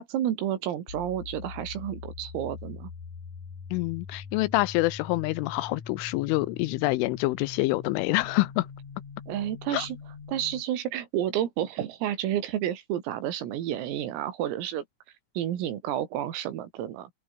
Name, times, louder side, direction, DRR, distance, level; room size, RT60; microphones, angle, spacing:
voice 1, 0.0-2.9 9.3-10.0 10.3-14.9 15.4-17.1, right 11 dB, 80° right, 5.2 m, -30 dB
sound 1, 0.9-10.6, left 5 dB, 40° left, 4.7 m, -43 dB
voice 2, 3.7-8.7 9.7-9.9, left 20 dB, 80° left, 2.9 m, -26 dB
omnidirectional pair, 6.0 m